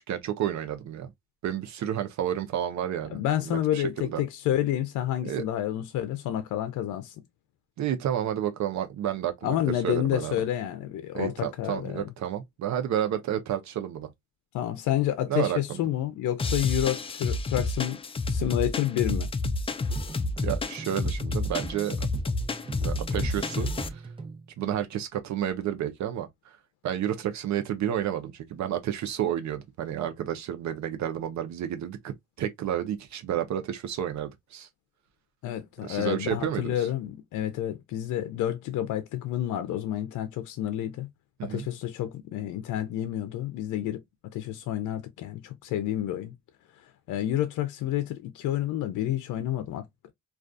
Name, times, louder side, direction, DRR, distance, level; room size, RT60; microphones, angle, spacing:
voice 1, 0.1-1.1 1.4-4.2 5.2-5.4 7.8-9.5 9.8-10.3 11.1-14.1 15.3-15.8 20.4-22.1 22.8-24.0 24.6-26.6 26.8-34.7 35.8-36.7 41.4-41.6, right 10 dB, 65° right, 0.6 m, -31 dB
voice 2, 3.1-7.2 9.4-12.1 14.5-18.0 18.3-19.3 35.4-41.1 41.4-46.3 46.8-50.1, left 12 dB, 80° left, 0.5 m, -29 dB
sound 1, 16.4-23.9, left 2 dB, 20° left, 0.3 m, -30 dB
sound 2, 20.0-24.5, right 3 dB, 15° right, 0.8 m, -39 dB
2.4 x 2.3 x 2.5 m
cardioid pair, 90°, 30 cm